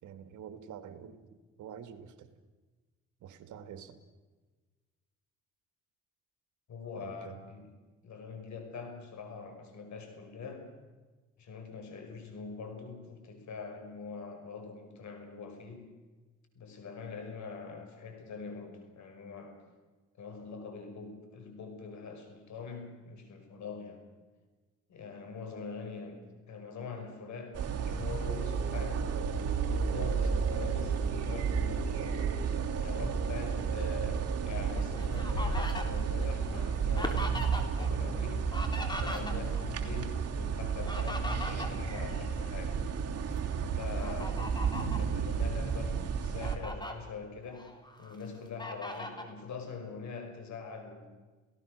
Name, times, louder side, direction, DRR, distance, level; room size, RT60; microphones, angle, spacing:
voice 1, 0.0-1.3 1.6-2.3 3.2-4.0 7.0-7.5 33.5-33.6 43.9-44.5, right 8 dB, 80° right, 10 dB, 2.2 m, -47 dB
voice 2, 6.7-7.7 8.0-10.8 11.4-15.9 16.6-19.6 20.2-24.1 24.9-29.1 29.7-32.1 32.7-38.5 39.0-42.8 43.8-44.3 44.7-51.1, left 5 dB, 70° left, 6 dB, 5.6 m, -43 dB
sound 1, 27.5-46.6, right 6 dB, 55° right, 3.0 m, -32 dB
Fowl, 34.6-37.9 38.2-39.7 40.6-42.7 43.2-43.4 44.0-45.1 45.7-45.8 46.2-46.9 47.5-48.2 48.6-49.3, left 1 dB, 15° left, 3.6 m, -39 dB
30.0 x 17.0 x 6.6 m, 1.3 s
cardioid pair, 90°, 30 cm